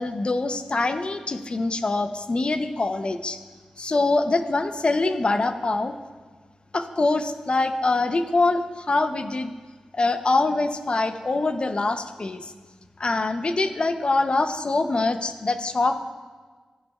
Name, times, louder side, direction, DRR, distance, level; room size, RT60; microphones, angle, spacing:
voice 1, 0.0-3.4 3.8-5.9 6.7-9.5 9.9-12.5 13.0-16.0, left 3 dB, 45° left, 8 dB, 0.7 m, -24 dB
15.0 x 10.5 x 2.4 m, 1.4 s
cardioid pair, 45°, 2 cm